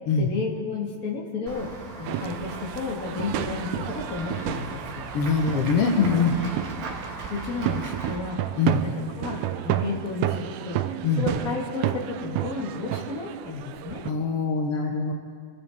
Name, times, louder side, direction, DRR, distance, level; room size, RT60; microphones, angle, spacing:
voice 1, 0.2-1.7 2.0-5.1 5.9-6.0 7.3-8.4 8.8-10.8 11.1-14.0, left 4 dB, 35° left, -2 dB, 1.6 m, -32 dB
Run / Walk footsteps / Bell, 1.5-8.2, right 3 dB, 55° right, 2.6 m, -39 dB
sound 1, 2.1-14.1, right 12 dB, 80° right, 1.9 m, -31 dB
voice 2, 5.1-6.3 8.6-8.8 11.0-11.2 14.0-15.1, left 5 dB, 85° left, 2 dB, 1.3 m, -23 dB
24.0 x 14.5 x 3.6 m, 2.1 s
omnidirectional pair, 4.2 m